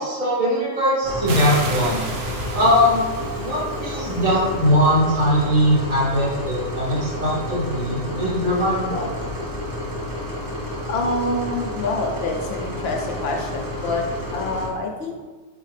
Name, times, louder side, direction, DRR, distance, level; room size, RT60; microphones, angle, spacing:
voice 1, 0.0-3.0 3.4-9.2, equal, 80° right, -13 dB, 1.8 m, -21 dB
sound 1, 1.0-14.7, left 1 dB, 20° right, 0.7 m, -30 dB
sound 2, 1.3-4.6, right 3 dB, 60° right, 0.7 m, -33 dB
voice 2, 10.9-15.2, left 2 dB, 60° left, 2 dB, 0.7 m, -26 dB
4.0 x 3.3 x 3.2 m, 1.3 s
omnidirectional pair, 1.4 m